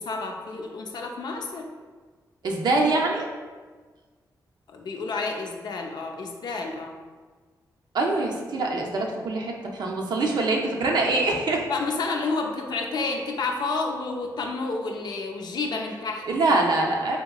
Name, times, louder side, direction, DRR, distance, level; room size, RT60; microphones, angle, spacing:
voice 1, 0.0-1.7 4.7-7.0 11.7-16.6, left 3 dB, 70° left, 2 dB, 0.4 m, -30 dB
voice 2, 2.4-3.3 7.9-11.6 16.3-17.2, right 2 dB, 70° right, 0 dB, 0.5 m, -24 dB
3.6 x 2.9 x 2.3 m, 1.4 s
cardioid pair, 90°, 7 cm